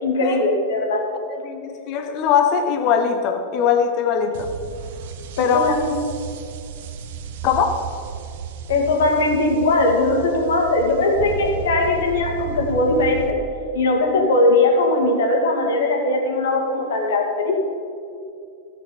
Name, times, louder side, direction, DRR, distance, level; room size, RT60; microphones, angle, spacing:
voice 1, 0.0-1.0 5.4-6.0 8.7-13.3 13.7-17.6, left 2 dB, 60° left, 2 dB, 2.2 m, -19 dB
voice 2, 1.3-4.5 5.4-5.7 7.4-7.9, left 7 dB, 40° left, 7 dB, 1.2 m, -21 dB
sound 1, 4.3-13.3, right 6 dB, 55° right, 0.8 m, -33 dB
14.5 x 7.6 x 5.0 m, 2.5 s
figure-of-eight pair, 90°, 0 cm